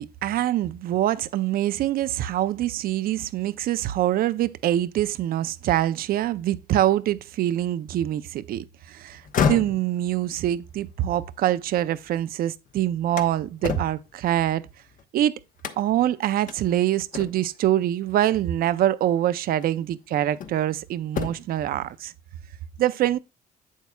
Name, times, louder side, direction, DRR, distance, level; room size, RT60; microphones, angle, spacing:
voice 1, 0.0-9.2 9.5-14.6 15.1-15.4 15.8-22.1 22.8-23.2, right 12 dB, 60° right, 0.5 m, -24 dB
sound 1, 9.1-12.3 12.7-15.0 15.6-16.1 16.5-16.6 17.1-17.6 18.9-19.0 19.6-20.7 21.0-21.6, left 6 dB, 50° left, 0.9 m, -31 dB
8.2 x 7.3 x 2.3 m
cardioid pair, 110°, 17 cm